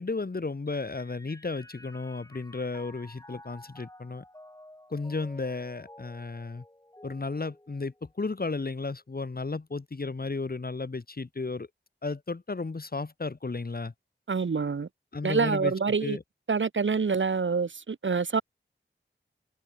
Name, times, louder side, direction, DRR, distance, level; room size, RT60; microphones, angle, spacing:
voice 1, 0.0-4.2 4.9-6.6 7.0-11.7 12.0-13.9 15.1-15.7 16.0-16.2, left 3 dB, 50° left, 2.0 m, -34 dB
Mallet percussion, 0.7-8.4, left 1 dB, 15° left, 7.0 m, -52 dB
voice 2, 14.3-14.9 15.2-16.2 16.5-18.4, right 5 dB, 80° right, 1.4 m, -26 dB
wide cardioid pair, 80°, 20 cm